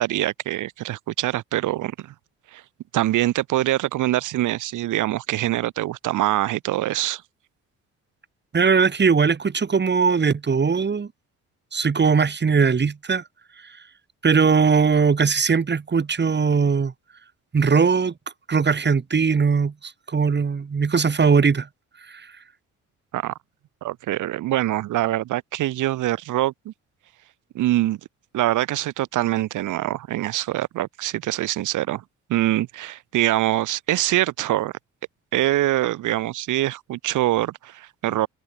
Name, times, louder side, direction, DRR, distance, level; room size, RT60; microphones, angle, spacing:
voice 1, 0.0-2.1 2.5-2.6 2.9-7.2 23.1-23.3 23.8-26.7 27.5-28.0 28.3-32.0 32.3-34.7 35.3-38.3, right 15 dB, 80° right, 1.7 m, -24 dB
voice 2, 8.5-11.1 11.7-13.2 14.2-16.9 17.5-18.1 18.5-21.7 22.1-22.3, right 5 dB, 35° right, 4.8 m, -20 dB
cardioid pair, 90°, 30 cm